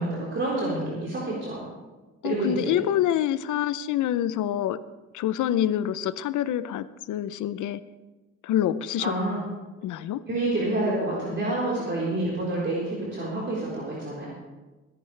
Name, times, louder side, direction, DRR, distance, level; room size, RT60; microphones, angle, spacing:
voice 1, 0.0-1.7 2.2-2.8 9.0-9.4 10.3-14.3, right 2 dB, 40° right, -6 dB, 4.2 m, -28 dB
voice 2, 2.2-4.8 5.1-7.8 8.4-9.1 9.8-10.2, left 11 dB, 80° left, 15 dB, 0.7 m, -26 dB
20.5 x 10.5 x 3.3 m, 1.2 s
cardioid pair, 90°, 30 cm